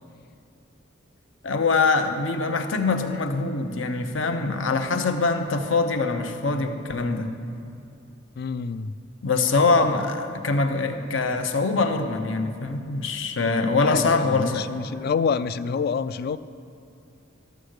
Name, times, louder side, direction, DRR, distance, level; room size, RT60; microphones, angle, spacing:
voice 1, 1.4-7.3 9.2-14.7, left 3 dB, 70° left, 7 dB, 0.8 m, -23 dB
voice 2, 8.4-8.9 13.8-16.4, left 5 dB, 50° left, 15 dB, 0.3 m, -27 dB
13.0 x 6.4 x 6.5 m, 2.6 s
head